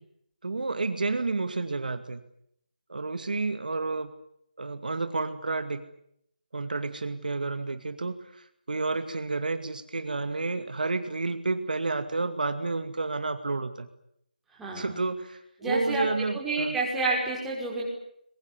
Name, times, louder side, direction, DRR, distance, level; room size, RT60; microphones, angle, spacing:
voice 1, 0.4-2.2 2.9-4.1 4.6-5.9 6.5-13.9 14.7-16.8, right 3 dB, 70° right, 9 dB, 2.4 m, -30 dB
voice 2, 14.6-15.0 15.6-16.0 16.3-17.8, right 3 dB, 5° right, -4 dB, 5.7 m, -29 dB
22.5 x 22.5 x 9.9 m, 0.73 s
figure-of-eight pair, 165°, 5 cm